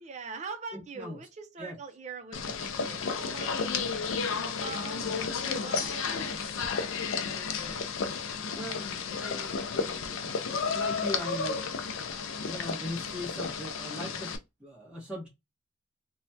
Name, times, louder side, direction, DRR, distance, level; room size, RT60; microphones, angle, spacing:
voice 1, 0.0-7.1, right 5 dB, 35° right, 0.5 m, -44 dB
voice 2, 0.7-1.2 1.6-1.7 8.5-10.2 10.6-11.6 12.4-14.3 14.6-15.3, left 1 dB, 5° right, 1.3 m, -39 dB
sound 1, 2.3-14.4, left 5 dB, 75° left, 0.5 m, -32 dB
3.1 x 2.3 x 2.7 m
head